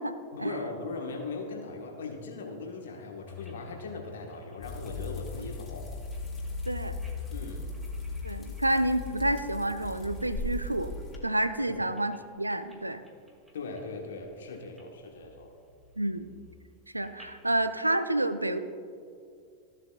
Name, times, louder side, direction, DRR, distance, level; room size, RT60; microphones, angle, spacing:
voice 1, 0.3-5.9 7.3-7.6 11.7-11.8 13.5-15.5, left 3 dB, 65° left, 2 dB, 1.3 m, -39 dB
sound 1, 3.3-10.7 11.1-12.2 12.5-12.8 13.1-13.9 14.3-14.8 15.2-17.5, left 5 dB, 5° right, 1.7 m, -43 dB
sound 2, 4.6-11.2, left 2 dB, 25° left, 1.9 m, -39 dB
voice 2, 6.7-7.0 8.2-10.9 11.2-13.0 16.0-16.3 16.9-18.6, right 1 dB, 85° right, 11 dB, 0.4 m, -29 dB
14.5 x 7.6 x 2.4 m, 2.4 s
figure-of-eight pair, 90°, 0 cm